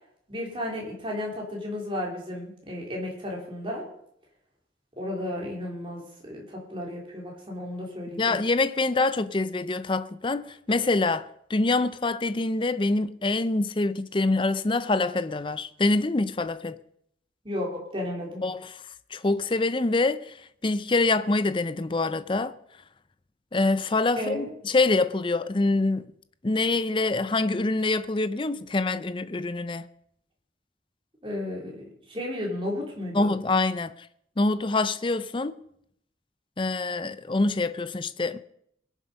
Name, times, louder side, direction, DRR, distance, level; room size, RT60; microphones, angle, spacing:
voice 1, 0.3-3.9 5.0-8.4 17.4-18.4 24.1-24.5 31.2-33.3, left 1 dB, 30° right, 3.4 m, -33 dB
voice 2, 8.2-16.8 18.4-18.8 19.1-20.4 20.6-22.5 23.5-26.1 26.4-29.9 33.1-33.9 34.4-35.6 36.6-38.4, left 3 dB, 30° left, 0.5 m, -25 dB
21.5 x 7.3 x 5.4 m
head